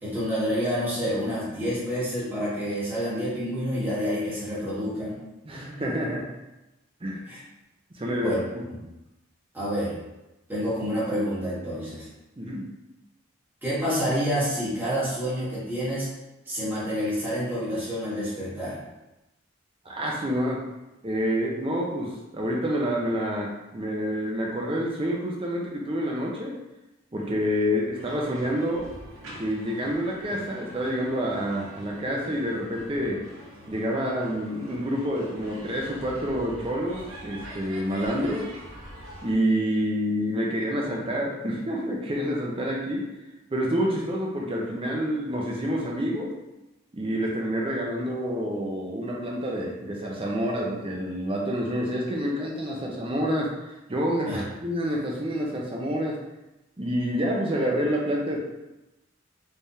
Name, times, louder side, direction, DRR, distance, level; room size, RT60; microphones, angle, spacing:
voice 1, 0.0-5.2 7.3-7.4 8.2-8.4 9.5-9.9 10.5-12.1 13.6-16.1 16.5-18.8 54.2-54.4, equal, 10° right, -10 dB, 1.3 m, -28 dB
voice 2, 5.5-6.3 7.0-7.2 7.9-8.6 12.4-12.7 19.8-20.6 21.0-26.6 27.1-28.9 29.4-33.2 33.7-38.5 39.2-43.1 43.5-46.3 46.9-53.5 53.9-56.2 56.8-58.4, equal, 25° right, -2 dB, 0.6 m, -28 dB
sound 1, 27.9-39.4, right 1 dB, 90° right, 0.8 m, -44 dB
3.4 x 3.4 x 2.7 m, 0.98 s
head